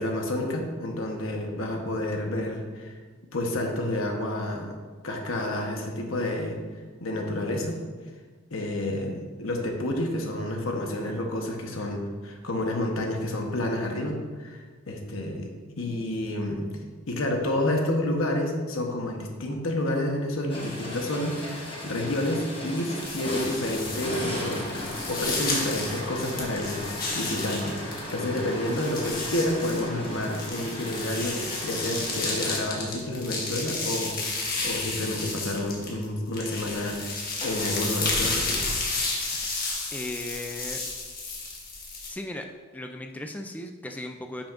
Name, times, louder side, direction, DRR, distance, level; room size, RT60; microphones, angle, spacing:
voice 1, 0.0-3.0 3.3-4.7 5.0-6.6 7.0-7.8 8.5-15.5 15.8-16.8 17.1-38.6, left 1 dB, 75° left, 2 dB, 1.1 m, -29 dB
sound 1, 20.5-33.5 37.4-37.9, left 1 dB, 25° left, 1.2 m, -36 dB
sound 2, 23.0-28.1 28.4-36.1 36.3-42.1, left 3 dB, 45° left, 1.5 m, -32 dB
voice 2, 39.9-40.8 42.1-42.5 42.7-44.5, left 1 dB, 5° left, 4 dB, 0.3 m, -36 dB
9.9 x 5.9 x 2.5 m, 1.5 s
head